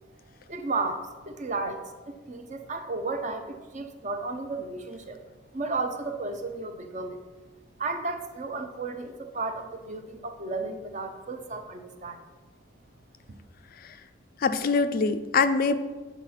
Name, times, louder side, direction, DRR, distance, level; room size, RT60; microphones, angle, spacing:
voice 1, 0.5-5.2 5.5-7.2 7.8-12.3 13.3-13.4, right 3 dB, 35° right, 7 dB, 0.6 m, -33 dB
voice 2, 14.4-15.7, left 4 dB, 45° left, 11 dB, 0.4 m, -24 dB
8.2 x 4.2 x 5.6 m, 1.2 s
head